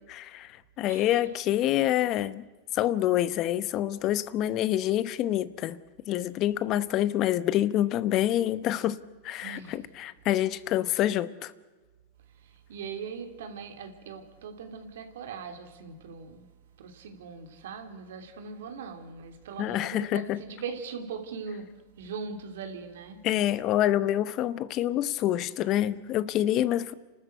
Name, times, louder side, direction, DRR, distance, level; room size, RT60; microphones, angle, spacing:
voice 1, 0.1-2.4 2.7-5.8 6.1-9.0 9.2-11.5 19.6-20.4 23.2-26.9, left 13 dB, 45° left, 0.9 m, -27 dB
voice 2, 9.4-9.7 12.4-16.4 16.8-21.7 22.0-23.2, right 5 dB, 75° right, 2.9 m, -40 dB
28.5 x 13.0 x 8.2 m
hypercardioid pair, 110°, 0 cm